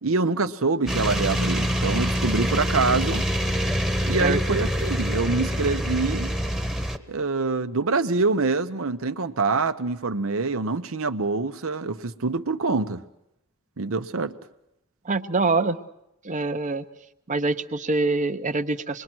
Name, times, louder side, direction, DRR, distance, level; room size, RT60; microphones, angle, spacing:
voice 1, 0.0-3.2 4.1-6.3 7.1-13.0 13.8-14.3, right 3 dB, 85° right, 0.9 m, -25 dB
sound 1, 0.9-7.0, equal, 5° right, 1.1 m, -25 dB
voice 2, 15.0-15.8 16.2-16.8 17.3-19.0, right 3 dB, 40° right, 0.8 m, -25 dB
26.0 x 21.5 x 6.1 m
head